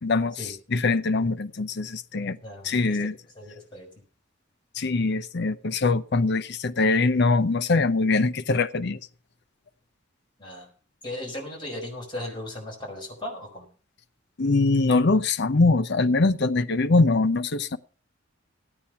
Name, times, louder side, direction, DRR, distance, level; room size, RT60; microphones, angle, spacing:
voice 1, 0.0-0.4 0.7-2.4 2.6-3.1 4.7-9.0 14.4-17.8, left 3 dB, 55° left, 0.7 m, -22 dB
voice 2, 2.4-3.1 3.3-3.9 10.4-10.7 11.0-13.7, left 1 dB, 25° left, 4.8 m, -37 dB
14.0 x 9.1 x 5.7 m
head